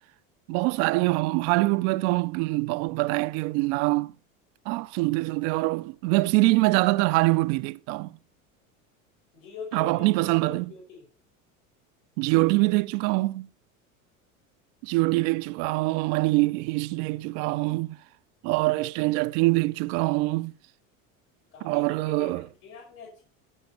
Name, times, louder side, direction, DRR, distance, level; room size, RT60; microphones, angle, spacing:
voice 1, 0.5-4.1 4.7-8.2 9.7-10.7 12.2-13.5 14.8-18.0 18.4-20.5 21.6-22.5, right 22 dB, 60° right, 0.6 m, -24 dB
voice 2, 9.3-11.1 21.5-23.2, left 5 dB, 75° left, 5.5 m, -44 dB
16.5 x 5.8 x 4.4 m
hypercardioid pair, 90°, 41 cm